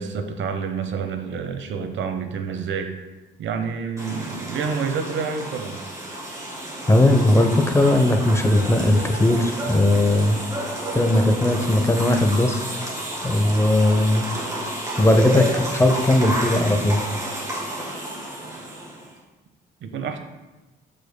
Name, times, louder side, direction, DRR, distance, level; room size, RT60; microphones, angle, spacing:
voice 1, 0.0-2.9 3.4-5.8 19.8-20.2, right 6 dB, 70° right, 6 dB, 0.8 m, -28 dB
sound 1, 4.0-19.1, right 1 dB, 15° right, 2.1 m, -30 dB
voice 2, 6.9-10.4 10.9-12.6 13.2-14.3 15.0-17.0, left 1 dB, 15° left, 5 dB, 0.7 m, -18 dB
13.0 x 5.2 x 2.2 m, 1.1 s
cardioid pair, 90°, 20 cm